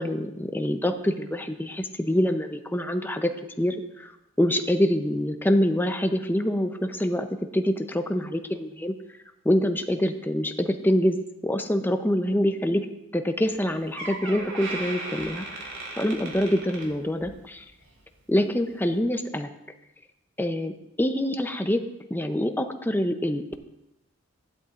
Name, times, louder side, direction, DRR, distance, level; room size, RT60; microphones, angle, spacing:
voice 1, 0.0-3.3 3.6-4.1 4.4-7.3 7.5-8.9 9.4-12.8 13.1-17.6 18.3-19.5 20.4-20.7 21.0-21.8 22.1-23.6, equal, 10° left, 7 dB, 0.6 m, -25 dB
Door, 13.5-13.6 14.0-17.5 17.8-18.1 18.8-18.9, right 2 dB, 75° right, 2.7 m, -37 dB
15.5 x 11.5 x 2.5 m, 0.87 s
head